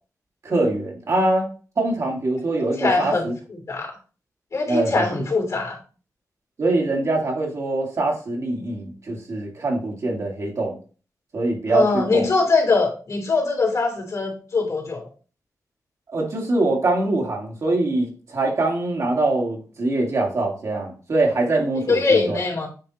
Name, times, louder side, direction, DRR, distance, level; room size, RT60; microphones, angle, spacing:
voice 1, 0.4-1.5 1.8-3.3 4.7-5.2 6.6-10.8 11.3-12.3 16.1-22.4, right 2 dB, 55° right, 2.4 m, -23 dB
voice 2, 2.8-3.3 3.7-3.9 4.5-5.8 11.7-15.1 21.9-22.7, left 3 dB, 60° left, 3.1 m, -22 dB
9.0 x 3.6 x 4.2 m
wide cardioid pair, 130°, 6 cm